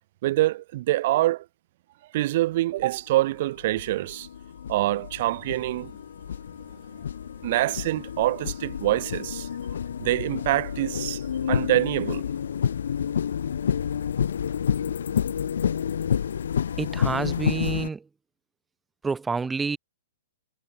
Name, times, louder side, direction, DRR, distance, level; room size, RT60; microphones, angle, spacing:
voice 1, 0.2-1.4 2.1-4.3 4.7-5.9 7.4-9.5 10.0-11.2 11.5-12.2, right 16 dB, 50° right, 0.8 m, -25 dB
sound 1, 2.8-2.9 3.6-17.9, left 8 dB, 75° left, 1.3 m, -29 dB
voice 2, 16.8-18.1 19.0-19.8, right 4 dB, 10° right, 5.9 m, -28 dB
hypercardioid pair, 130°, 0 cm